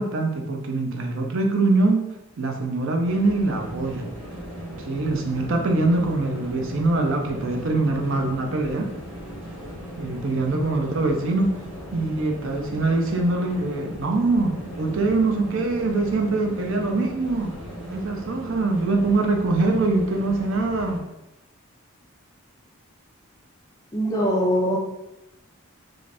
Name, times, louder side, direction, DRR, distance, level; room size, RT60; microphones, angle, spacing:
voice 1, 0.0-2.0 2.4-4.1 4.8-8.9 10.0-11.5 11.9-17.5 17.9-21.0, right 2 dB, 65° right, 2 dB, 0.5 m, -23 dB
sound 1, 3.0-21.0, equal, 10° right, 0.9 m, -37 dB
voice 2, 23.9-24.8, equal, 15° left, 0 dB, 0.3 m, -22 dB
2.5 x 2.5 x 3.3 m, 0.92 s
head